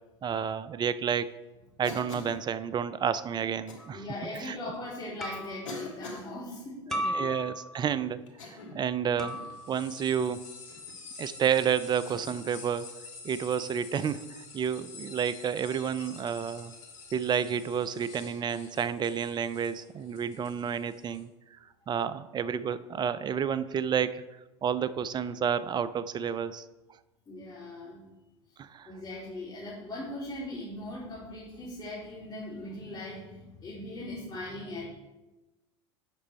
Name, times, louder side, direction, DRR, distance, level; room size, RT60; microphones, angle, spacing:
voice 1, 0.2-1.3 1.8-4.0 4.4-4.6 6.9-8.2 8.5-9.4 9.7-10.4 11.2-12.9 13.2-16.7 17.1-21.3 21.9-24.2 24.6-26.6 28.6-28.9, right 7 dB, 25° right, 15 dB, 0.4 m, -30 dB
Cough, 1.8-2.4 3.7-3.9 4.8-4.9 5.6-6.3 8.3-8.9 9.3-9.6 10.7-11.0 12.1-12.4 13.9-14.2 16.4-16.5 18.2-18.4, left 2 dB, 80° left, 1.6 m, -44 dB
sound 1, 3.8-4.1 5.2-5.7 6.9-7.8 9.2-9.8, equal, 5° left, 1.5 m, -35 dB
voice 2, 3.9-7.3 27.3-28.0 28.8-34.9, left 1 dB, 25° left, -8 dB, 3.2 m, -40 dB
sound 2, 9.3-21.2, left 4 dB, 55° left, 2.8 m, -48 dB
8.3 x 6.0 x 4.3 m, 1.1 s
hypercardioid pair, 80°, 16 cm